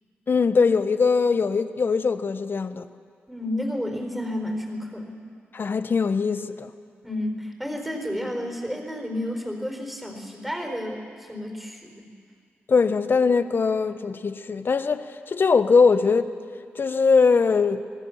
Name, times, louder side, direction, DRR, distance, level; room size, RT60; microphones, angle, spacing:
voice 1, 0.3-2.9 5.5-6.7 12.7-16.3 16.7-17.8, left 5 dB, 50° left, 1.1 m, -21 dB
voice 2, 3.3-5.2 7.0-12.1, left 1 dB, ahead, 4.5 m, -31 dB
26.0 x 19.5 x 7.3 m
cardioid pair, 60°, 4 cm